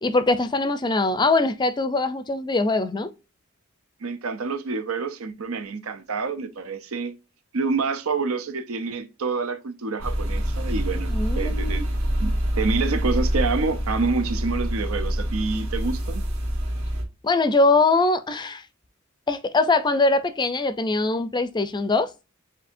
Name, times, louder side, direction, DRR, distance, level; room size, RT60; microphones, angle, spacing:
voice 1, 0.0-3.1 11.1-11.9 17.2-18.6 19.3-22.1, left 3 dB, 20° left, 0.4 m, -22 dB
voice 2, 4.0-7.1 7.5-11.8 12.2-16.2, right 4 dB, 80° right, 0.7 m, -27 dB
sound 1, 10.0-17.0, equal, 65° right, 1.6 m, -26 dB
7.4 x 2.8 x 2.5 m
head